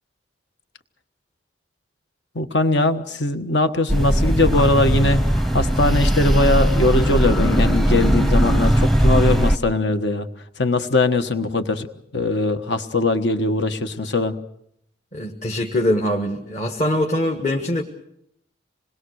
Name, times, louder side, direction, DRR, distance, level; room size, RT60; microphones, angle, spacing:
voice 1, 2.3-10.3 10.6-11.9 12.1-14.4, left 2 dB, 70° left, 9 dB, 1.4 m, -21 dB
sound 1, 3.9-9.6, equal, ahead, 0.8 m, -18 dB
voice 2, 15.1-17.8, left 1 dB, 40° left, 2 dB, 1.5 m, -22 dB
27.0 x 20.5 x 6.5 m, 0.75 s
head